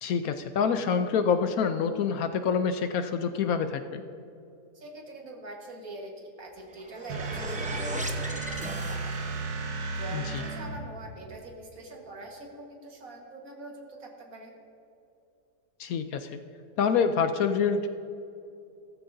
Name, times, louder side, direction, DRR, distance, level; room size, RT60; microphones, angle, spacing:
voice 1, 0.0-4.0 10.1-10.2 15.8-16.4 16.8-17.9, left 6 dB, 70° left, 9 dB, 1.0 m, -26 dB
voice 2, 4.7-9.1 9.9-14.5, right 2 dB, 60° right, 1 dB, 1.9 m, -44 dB
sound 1, 6.5-9.5, right 1 dB, 10° right, 0.3 m, -39 dB
sound 2, 7.1-11.0, right 3 dB, 75° right, 1.4 m, -34 dB
16.5 x 14.0 x 2.7 m, 2.7 s
omnidirectional pair, 1.7 m